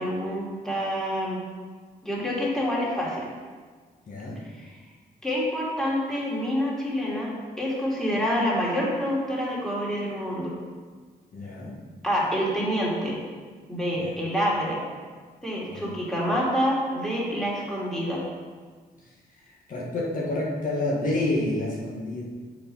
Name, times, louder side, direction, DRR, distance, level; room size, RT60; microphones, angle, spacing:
voice 1, 0.0-1.4 2.0-3.3 4.4-4.7 5.2-10.6 12.0-13.2 13.7-14.8 15.4-18.2, equal, 5° left, -6 dB, 2.5 m, -27 dB
voice 2, 4.1-4.4 11.3-11.8 13.9-14.2 15.7-15.9 19.4-22.2, left 2 dB, 50° left, -5 dB, 1.5 m, -29 dB
7.0 x 5.2 x 5.4 m, 1.5 s
cardioid pair, 95°, 17 cm